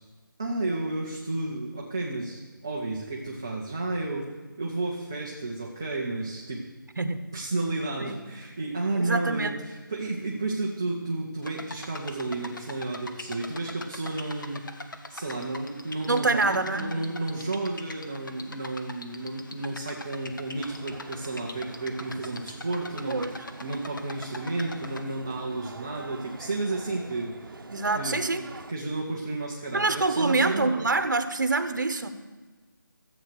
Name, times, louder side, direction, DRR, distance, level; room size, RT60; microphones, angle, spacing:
voice 1, 0.4-4.3 4.6-6.6 7.3-14.8 15.1-27.6 27.9-28.2 28.7-30.9, right 2 dB, 10° right, -3 dB, 0.4 m, -32 dB
voice 2, 8.9-9.6 16.1-16.9 23.1-23.3 27.7-28.4 29.7-32.1, right 3 dB, 60° right, 10 dB, 1.1 m, -26 dB
sound 1, 11.4-25.0, left 2 dB, 65° left, 1.1 m, -42 dB
sound 2, 20.6-28.7, right 3 dB, 75° right, 0.7 m, -45 dB
13.5 x 7.7 x 6.6 m, 1.3 s
figure-of-eight pair, 170°, 12 cm